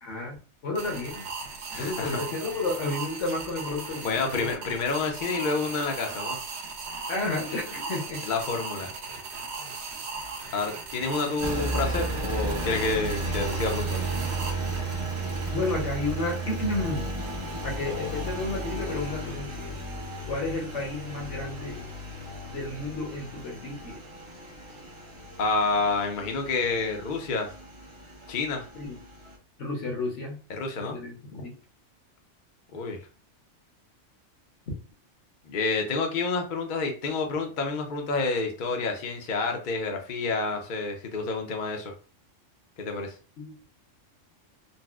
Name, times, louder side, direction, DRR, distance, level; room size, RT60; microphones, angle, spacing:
voice 1, 0.0-0.3 0.6-1.2 1.8-4.5 7.1-8.2 15.5-17.1 17.6-19.8 20.3-21.8 22.5-24.0 28.7-29.0 29.6-30.4 30.9-31.5 43.4-43.5, left 2 dB, 75° left, 0 dB, 1.3 m, -31 dB
sound 1, 0.8-15.5, right 4 dB, 70° right, 0.9 m, -38 dB
voice 2, 1.7-2.2 4.0-6.4 8.2-8.9 10.5-14.1 25.4-27.5 28.3-28.7 30.5-31.0 32.7-33.0 35.5-41.9 42.8-43.1, left 3 dB, 50° left, 3 dB, 0.7 m, -29 dB
Engine, 11.4-29.4, right 2 dB, 35° right, 0.5 m, -34 dB
4.0 x 2.0 x 2.3 m, 0.36 s
omnidirectional pair, 1.3 m